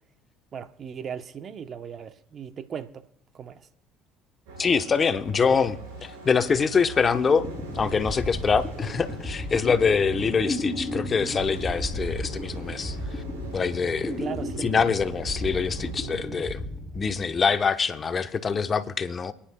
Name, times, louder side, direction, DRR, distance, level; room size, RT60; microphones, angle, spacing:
voice 1, 0.5-3.0 3.3-3.7 14.2-14.9, right 7 dB, 45° right, 0.8 m, -37 dB
sound 1, 4.5-16.2, right 3 dB, 80° right, 5.4 m, -42 dB
voice 2, 4.6-7.5 7.7-13.2 13.5-14.2 14.6-16.6 16.9-19.3, left 5 dB, 35° left, 0.9 m, -24 dB
sound 2, 7.3-17.6, left 1 dB, ahead, 6.2 m, -34 dB
28.0 x 10.0 x 2.2 m
hypercardioid pair, 65°, 0 cm